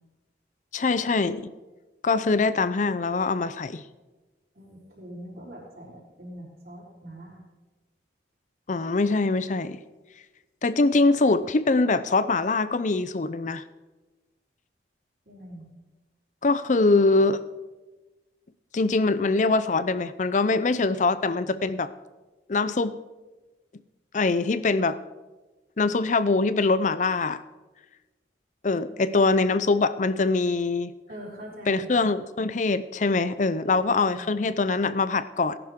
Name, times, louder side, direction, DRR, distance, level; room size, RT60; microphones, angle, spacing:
voice 1, 0.7-1.5 2.0-3.8 8.7-9.8 10.6-13.6 16.4-17.4 18.7-21.9 22.5-23.0 24.1-25.0 25.8-27.4 28.6-30.9 31.7-35.6, left 3 dB, 45° left, 15 dB, 0.5 m, -23 dB
voice 2, 4.5-7.4 15.3-15.7 28.8-29.0 31.1-31.9 33.6-34.3, equal, 55° right, -5 dB, 4.2 m, -43 dB
18.0 x 11.0 x 3.7 m, 1.2 s
head